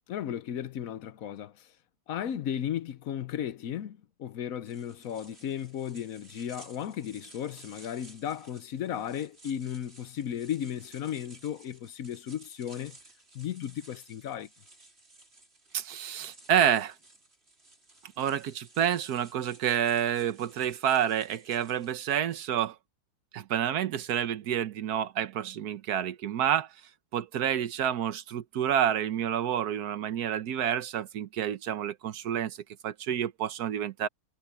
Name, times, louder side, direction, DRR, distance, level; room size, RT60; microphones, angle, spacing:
voice 1, 0.1-1.7 2.1-13.0 13.3-14.5, left 9 dB, 60° left, 1.0 m, -35 dB
sound 1, 4.6-22.1, right 2 dB, 30° right, 4.4 m, -56 dB
voice 2, 15.7-16.9 18.2-22.7 23.3-26.7 27.1-32.6 32.8-34.1, right 10 dB, 60° right, 1.3 m, -29 dB
omnidirectional pair, 2.1 m